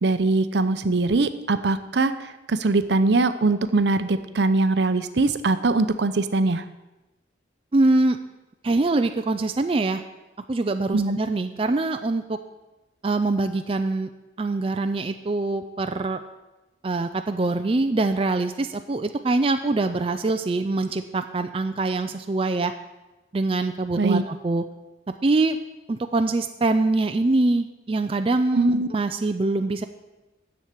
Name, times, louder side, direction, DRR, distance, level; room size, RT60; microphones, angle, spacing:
voice 1, 0.0-6.6 10.9-11.2 24.0-24.2 28.5-28.9, right 3 dB, 65° right, 11 dB, 0.6 m, -22 dB
voice 2, 7.7-8.2 8.6-10.0 10.5-12.4 13.0-14.1 14.4-16.2 16.8-22.7 23.3-24.6 25.2-25.6 25.9-29.8, right 2 dB, 30° right, 7 dB, 0.4 m, -24 dB
7.5 x 7.2 x 8.3 m, 1.1 s
head